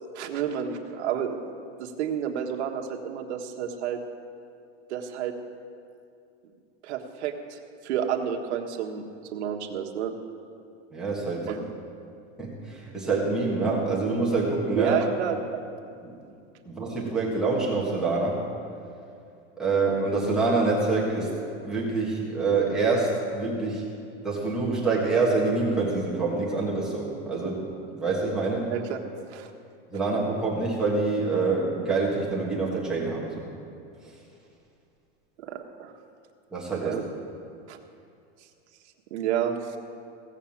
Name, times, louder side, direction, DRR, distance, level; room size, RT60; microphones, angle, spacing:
voice 1, 0.1-1.5 1.8-4.0 4.9-5.3 6.8-10.1 11.5-11.6 14.7-15.6 28.7-29.0 29.3-29.5 35.4-35.9 36.8-37.0 37.7-37.8 39.1-39.8, right 8 dB, 80° right, 3 dB, 1.4 m, -30 dB
voice 2, 10.9-11.5 12.4-15.0 16.0-16.2 16.6-18.4 19.6-23.9 24.2-28.7 29.9-33.5 34.0-34.1 36.5-37.0, right 3 dB, ahead, -7 dB, 1.6 m, -26 dB
16.5 x 7.2 x 7.2 m, 2.5 s
supercardioid pair, 180°, 34 cm